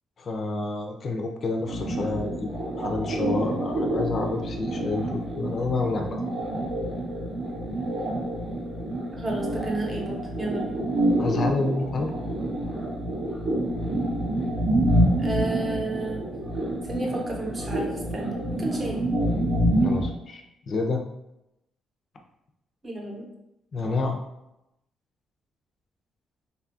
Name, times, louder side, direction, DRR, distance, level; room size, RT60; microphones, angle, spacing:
voice 1, 0.2-2.5 2.8-6.2 11.2-12.1 19.8-21.0 23.7-24.2, left 3 dB, 50° left, 3 dB, 0.4 m, -29 dB
sound 1, 1.7-20.1, right 1 dB, 65° right, 0.6 m, -27 dB
voice 2, 9.1-10.7 15.2-16.2 16.8-19.0 22.8-23.3, right 2 dB, 30° right, -1 dB, 0.7 m, -32 dB
2.6 x 2.3 x 2.6 m, 0.86 s
cardioid pair, 90°, 0 cm